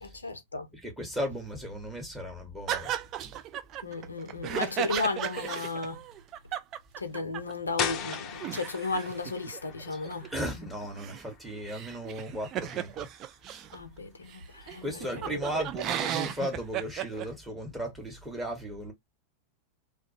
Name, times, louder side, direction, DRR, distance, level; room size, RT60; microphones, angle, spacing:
voice 1, 0.0-0.7 3.8-6.0 7.0-10.3 13.7-15.6, left 3 dB, 75° left, 0.5 m, -34 dB
voice 2, 0.8-2.9 9.9-10.0 10.3-13.1 14.8-18.9, equal, 10° right, 1.0 m, -36 dB
sound 1, 2.7-7.5 7.8-7.9 8.1-13.8 14.3-14.4 14.7-17.3, right 11 dB, 35° right, 0.3 m, -35 dB
sound 2, 7.8-13.4, left 7 dB, 35° left, 0.5 m, -39 dB
2.3 x 2.2 x 2.6 m
figure-of-eight pair, 90°, 0 cm